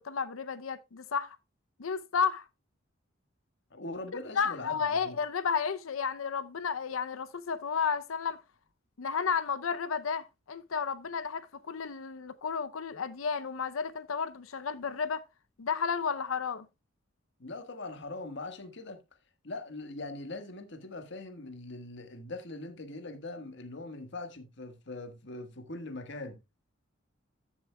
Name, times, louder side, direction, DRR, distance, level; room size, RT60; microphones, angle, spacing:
voice 1, 0.0-1.4 1.8-2.5 4.4-8.4 9.0-15.2 15.6-16.7, left 6 dB, 90° left, 0.6 m, -32 dB
voice 2, 3.7-5.2 17.4-19.0 19.4-26.4, left 2 dB, 60° left, 1.5 m, -41 dB
14.5 x 7.1 x 2.2 m
head